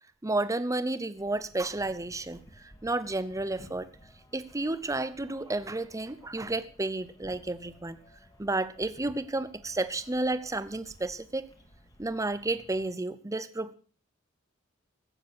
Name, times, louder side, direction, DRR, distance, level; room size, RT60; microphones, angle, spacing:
voice 1, 0.2-3.9 4.3-8.0 8.4-11.5 12.0-13.7, right 2 dB, 15° right, 14 dB, 0.7 m, -31 dB
sound 1, 1.2-12.9, equal, 20° left, 2.2 m, -56 dB
16.5 x 7.4 x 6.5 m, 0.40 s
head